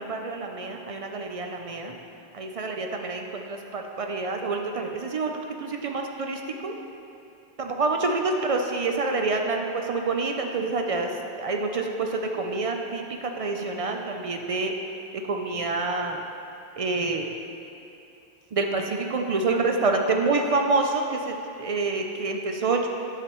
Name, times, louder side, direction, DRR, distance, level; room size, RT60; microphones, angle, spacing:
voice 1, 0.0-1.9 2.3-6.7 7.6-11.1 11.4-14.7 15.2-16.2 16.8-17.3 18.5-22.8, right 3 dB, 55° right, 3 dB, 0.4 m, -27 dB
9.7 x 6.7 x 3.0 m, 2.7 s
omnidirectional pair, 1.1 m